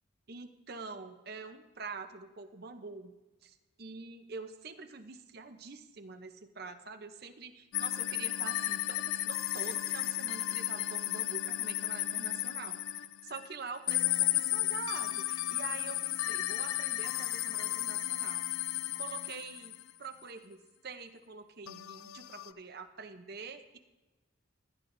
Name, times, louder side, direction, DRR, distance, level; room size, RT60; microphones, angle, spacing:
voice 1, 0.3-3.1 3.4-12.8 13.2-18.5 19.0-23.8, right 4 dB, 50° right, 7 dB, 0.7 m, -45 dB
sound 1, 7.7-13.5 13.9-19.9 21.7-22.5, left 14 dB, 90° left, 0.4 m, -34 dB
16.5 x 10.0 x 2.7 m, 1.1 s
head